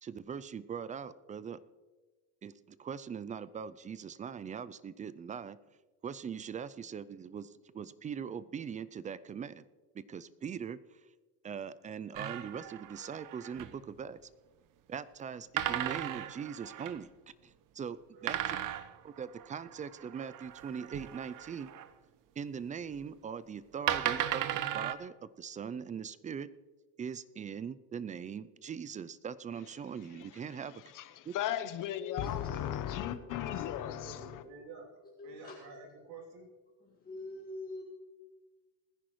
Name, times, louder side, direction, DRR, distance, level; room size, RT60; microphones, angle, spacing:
voice 1, 0.0-1.6 2.4-5.6 6.0-9.6 9.9-11.0 11.4-14.2 14.9-17.1 17.4-18.6 19.0-21.7 22.4-24.5 24.7-26.5 27.0-30.8 31.3-31.4, right 7 dB, 20° right, 0.3 m, -41 dB
sound 1, 12.1-13.8 15.6-17.0 18.3-21.9 23.0-23.1 23.9-24.9, right 12 dB, 50° right, 0.8 m, -36 dB
voice 2, 18.1-18.6 34.0-36.5, right 3 dB, 70° right, 3.2 m, -50 dB
voice 3, 30.7-34.4, left 11 dB, 45° left, 1.0 m, -36 dB
voice 4, 32.0-33.7 35.2-35.6 36.8-37.8, left 3 dB, 20° left, 1.9 m, -45 dB
20.0 x 10.5 x 3.1 m
supercardioid pair, 100°, 43 cm